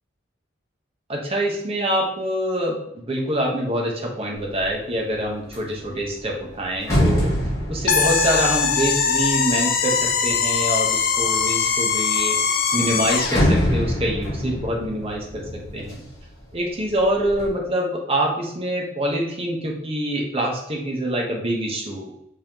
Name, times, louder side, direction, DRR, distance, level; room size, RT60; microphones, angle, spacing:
voice 1, 1.1-12.4 12.7-16.0 16.5-22.1, right 1 dB, 30° right, -1 dB, 1.0 m, -25 dB
sound 1, 4.4-4.8 5.2-10.5 11.1-11.8 12.2-12.3 12.5-16.5 16.8-17.5, equal, 20° left, 1.5 m, -25 dB
sound 2, 7.9-13.4, left 6 dB, 50° left, 0.5 m, -21 dB
5.4 x 3.4 x 2.9 m, 0.78 s
head